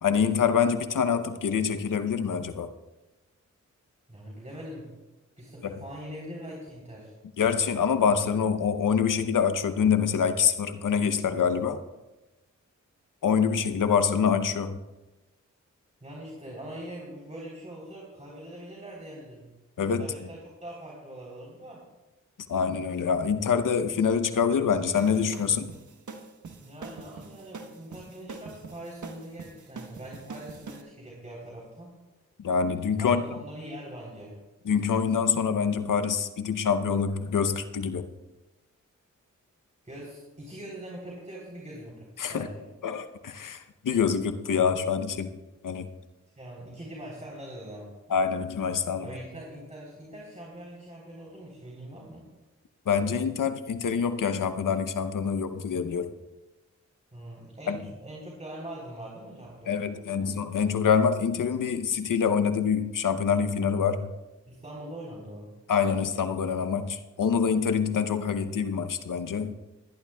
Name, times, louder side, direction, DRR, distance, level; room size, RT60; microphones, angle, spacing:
voice 1, 0.0-2.7 7.4-11.8 13.2-14.8 19.8-20.1 22.5-25.7 32.4-33.2 34.7-38.1 42.2-42.5 42.8-45.4 45.6-45.9 48.1-49.1 52.9-56.1 57.7-57.8 59.7-64.1 65.7-69.5, left 6 dB, 90° left, 10 dB, 0.8 m, -25 dB
voice 2, 4.1-4.9 5.4-7.1 16.0-19.5 20.0-21.9 26.6-31.9 33.0-34.4 39.8-42.7 46.4-47.9 49.0-52.3 57.1-60.4 64.5-65.5, right 1 dB, 25° right, -4 dB, 3.6 m, -42 dB
sound 1, 24.9-30.8, right 4 dB, 70° right, 1.2 m, -44 dB
20.0 x 11.5 x 2.3 m, 1.1 s
cardioid pair, 45°, 31 cm